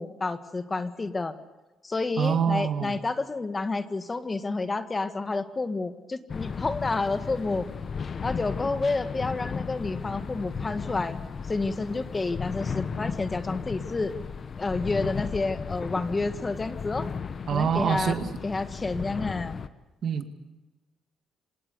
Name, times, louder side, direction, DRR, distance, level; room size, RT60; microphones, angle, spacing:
voice 1, 0.0-1.4 1.8-7.7 8.2-11.2 11.5-14.1 14.6-17.1 17.5-18.2 18.4-19.6, left 3 dB, 25° left, 10 dB, 1.7 m, -29 dB
voice 2, 2.2-3.0 17.5-18.3 20.0-20.3, right 7 dB, 60° right, 8 dB, 2.1 m, -26 dB
sound 1, 6.3-19.7, left 5 dB, 45° left, 1.2 m, -35 dB
26.5 x 19.0 x 6.9 m, 1.1 s
cardioid pair, 90°, 0 cm